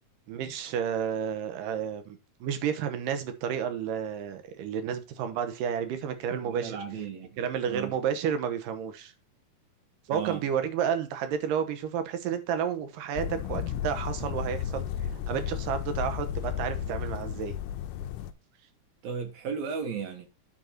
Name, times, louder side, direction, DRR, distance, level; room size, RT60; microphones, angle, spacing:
voice 1, 0.3-6.8 7.4-9.1 10.1-14.8 15.3-17.6, right 8 dB, 85° right, 2.7 m, -31 dB
voice 2, 6.4-7.4 7.7-7.9 10.1-10.5 19.0-20.3, right 6 dB, 65° right, 2.4 m, -35 dB
sound 1, 13.1-18.3, left 9 dB, 85° left, 2.2 m, -33 dB
10.0 x 4.1 x 4.3 m
omnidirectional pair, 3.8 m